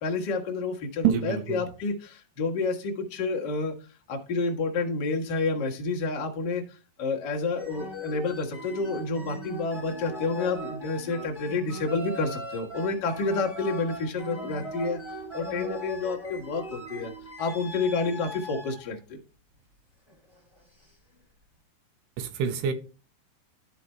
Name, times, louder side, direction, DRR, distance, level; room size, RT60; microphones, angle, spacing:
voice 1, 0.0-3.7 4.1-15.0 15.3-17.1 17.4-19.2, left 3 dB, 80° left, 0.9 m, -29 dB
voice 2, 1.0-1.6 22.2-22.7, right 8 dB, 85° right, 3.0 m, -26 dB
sound 1, 7.6-18.9 20.1-20.4, equal, 10° right, 2.1 m, -39 dB
12.5 x 4.2 x 4.4 m
omnidirectional pair, 4.7 m